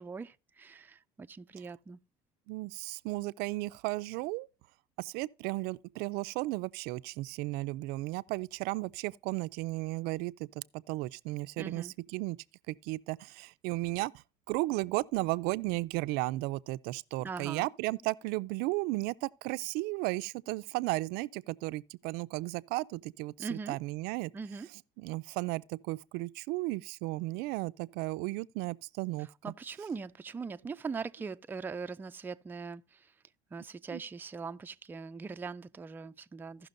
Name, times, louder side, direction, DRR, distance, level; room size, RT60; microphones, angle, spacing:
voice 1, 0.0-2.0 11.6-11.9 17.2-17.7 23.4-23.8 24.3-24.7 29.4-33.1 33.5-36.7, right 5 dB, 10° right, 0.3 m, -41 dB
voice 2, 2.5-4.5 5.0-12.4 12.7-24.3 25.0-29.5 33.9-34.0, right 21 dB, 80° right, 0.4 m, -34 dB
16.0 x 5.9 x 2.5 m
cardioid pair, 125°, 16 cm